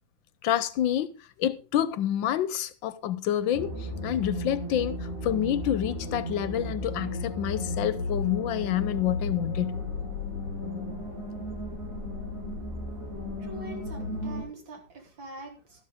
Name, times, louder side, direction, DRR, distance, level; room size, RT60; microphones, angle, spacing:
voice 1, 0.4-5.0 5.2-9.8, left 11 dB, 85° left, 1.6 m, -28 dB
sound 1, 3.5-14.4, left 1 dB, 35° right, 8.2 m, -34 dB
voice 2, 13.4-15.8, right 2 dB, 75° right, 3.5 m, -43 dB
12.5 x 12.0 x 3.6 m
omnidirectional pair, 2.1 m